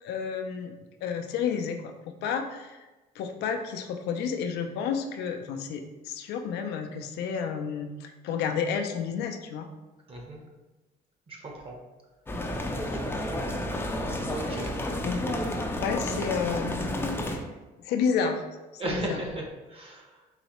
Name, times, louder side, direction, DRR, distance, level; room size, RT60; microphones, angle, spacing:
voice 1, 0.0-0.7 1.0-1.9 2.2-2.8 3.2-9.7 14.4-14.5 15.0-15.2 15.8-16.9 17.3-17.4 17.8-18.4 18.8-19.2, left 6 dB, 80° left, 5 dB, 0.5 m, -30 dB
voice 2, 11.3-11.8 13.0-13.4 14.2-14.7 18.8-19.4 19.7-20.1, right 1 dB, 35° right, 0 dB, 0.9 m, -35 dB
sound 1, 12.3-17.4, left 1 dB, 15° left, 0.4 m, -31 dB
4.0 x 3.2 x 3.0 m, 1.1 s
cardioid pair, 110°, 17 cm